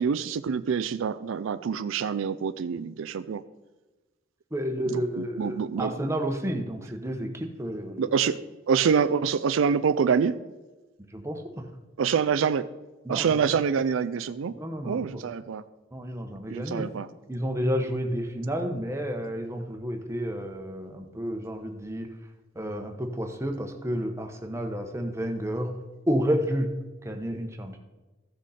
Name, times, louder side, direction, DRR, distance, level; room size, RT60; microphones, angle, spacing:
voice 1, 0.0-3.4 4.9-6.0 8.0-8.4 8.7-10.4 12.0-12.7 13.1-14.6 14.8-15.6 16.5-17.1, right 6 dB, 75° right, 13 dB, 0.4 m, -26 dB
voice 2, 4.5-8.1 11.1-11.6 13.0-13.5 14.6-15.2 15.9-16.9 17.3-22.1 22.5-25.8 26.1-26.7 27.0-27.8, equal, 15° right, 4 dB, 1.0 m, -30 dB
14.0 x 6.3 x 4.2 m, 1.2 s
head